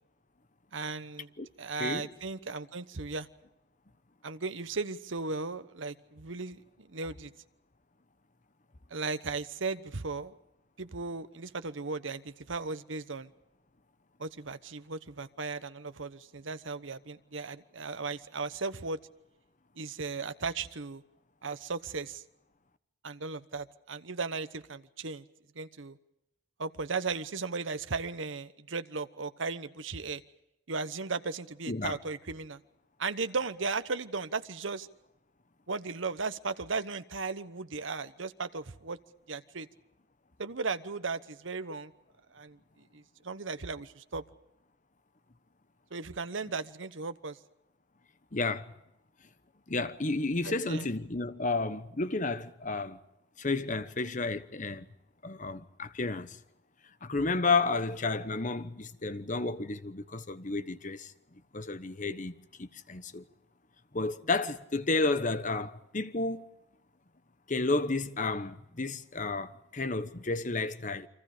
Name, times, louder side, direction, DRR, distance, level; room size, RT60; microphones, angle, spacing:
voice 1, 0.7-1.3 1.6-3.3 4.2-7.3 8.9-10.4 10.8-13.3 14.2-19.0 19.8-21.0 21.4-22.2 23.0-25.2 25.5-26.0 26.6-30.2 30.7-32.6 33.0-34.9 35.7-39.0 39.3-39.7 40.4-41.9 42.3-42.6 42.9-44.2 45.9-47.4 50.4-50.9, right 4 dB, 80° right, 1.1 m, -36 dB
voice 2, 31.7-32.0 48.3-48.7 49.7-53.0 53.4-54.9 55.2-56.4 57.0-61.1 61.5-62.3 62.6-63.2 63.9-66.4 67.5-71.1, left 3 dB, 40° left, 1.1 m, -31 dB
29.5 x 24.5 x 5.1 m
head